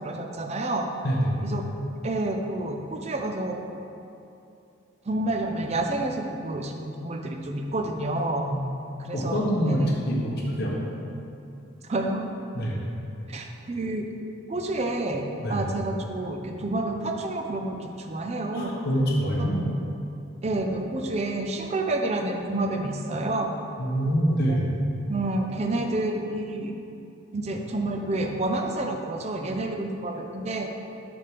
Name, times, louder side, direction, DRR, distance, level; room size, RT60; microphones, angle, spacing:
voice 1, 0.0-0.9 1.4-1.6 2.0-3.8 5.1-8.5 9.0-9.9 11.9-12.3 13.3-14.1 14.5-18.7 19.4-19.5 20.4-23.5 24.5-24.6 25.1-26.7 27.3-30.7, right 2 dB, 30° right, 3 dB, 0.4 m, -29 dB
voice 2, 9.1-10.8 12.5-12.8 15.4-15.6 18.5-19.7 23.8-24.6, equal, 50° left, -4 dB, 1.1 m, -25 dB
6.3 x 3.5 x 5.9 m, 2.7 s
head